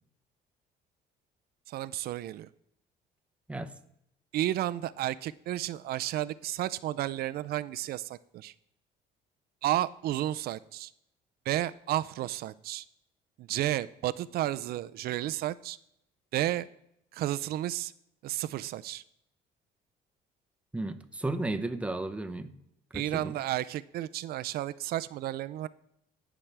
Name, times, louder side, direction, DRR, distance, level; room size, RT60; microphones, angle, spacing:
voice 1, 1.7-2.5 4.3-8.5 9.6-10.9 11.5-12.8 13.4-15.8 16.3-16.7 17.1-17.9 18.2-19.0 22.9-25.7, right 14 dB, 65° right, 16 dB, 0.4 m, -32 dB
voice 2, 20.7-22.5 22.9-23.4, right 2 dB, 5° right, 9 dB, 0.7 m, -34 dB
17.5 x 6.0 x 3.4 m, 0.78 s
cardioid pair, 110°, 17 cm